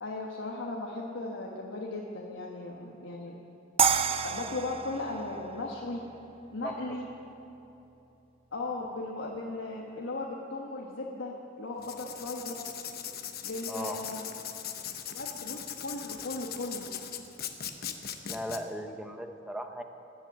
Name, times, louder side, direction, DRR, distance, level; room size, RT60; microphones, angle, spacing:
voice 1, 0.0-3.3 4.2-6.0 6.5-7.0 8.5-12.5 13.4-14.2 15.1-16.9, left 2 dB, 75° left, -2 dB, 1.3 m, -37 dB
sound 1, 3.8-6.9, right 7 dB, 30° right, 0.5 m, -30 dB
Writing, 11.8-18.6, left 9 dB, 55° left, 1.0 m, -39 dB
voice 2, 13.7-14.0 18.3-19.8, equal, 5° right, 5 dB, 0.8 m, -37 dB
19.5 x 7.6 x 8.3 m, 3.0 s
head